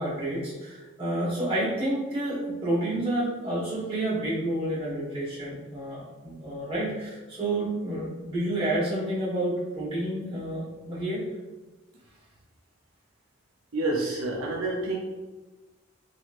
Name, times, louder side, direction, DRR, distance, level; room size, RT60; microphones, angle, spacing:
voice 1, 0.0-11.2, right 1 dB, 25° right, -8 dB, 1.3 m, -29 dB
voice 2, 13.7-15.0, right 2 dB, 85° right, -1 dB, 0.5 m, -28 dB
3.0 x 3.0 x 2.4 m, 1.2 s
head